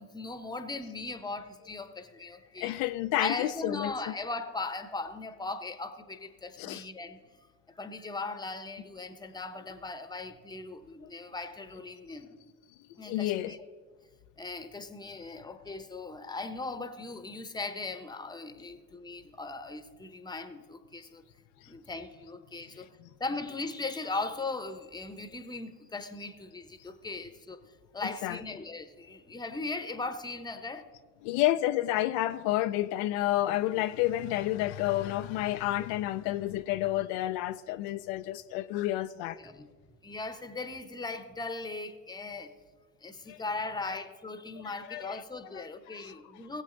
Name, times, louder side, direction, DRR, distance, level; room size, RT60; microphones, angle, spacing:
voice 1, 0.0-2.7 3.2-7.2 7.8-12.4 13.0-13.6 14.4-21.2 21.7-22.9 23.2-27.6 27.9-30.8 39.4-39.7 40.0-42.5 43.0-46.6, left 3 dB, 10° left, 0.9 m, -38 dB
voice 2, 2.6-4.1 6.6-6.8 13.1-13.5 21.0-21.1 21.6-21.7 28.2-28.4 31.2-39.4 43.3-43.4 43.8-43.9 44.9-45.2 45.5-45.6 45.9-46.1, left 15 dB, 65° left, 0.5 m, -30 dB
18.0 x 8.1 x 3.8 m
supercardioid pair, 90°, 46 cm